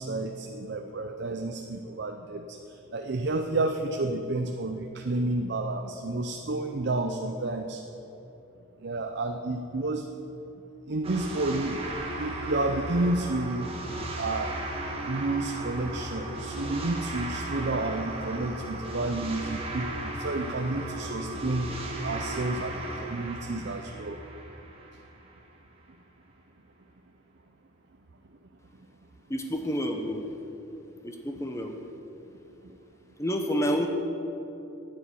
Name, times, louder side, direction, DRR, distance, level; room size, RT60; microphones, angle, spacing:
voice 1, 0.0-2.6 2.9-7.8 8.8-10.1 10.9-11.8 12.1-13.7 14.2-14.6 15.1-21.7 22.0-24.2, right 2 dB, 55° right, 5 dB, 0.6 m, -30 dB
sound 1, 11.0-25.4, right 1 dB, 30° right, 1.4 m, -36 dB
voice 2, 29.3-30.2 31.0-31.7 33.2-33.9, equal, 15° left, 4 dB, 1.0 m, -29 dB
9.9 x 9.8 x 8.3 m, 3.0 s
head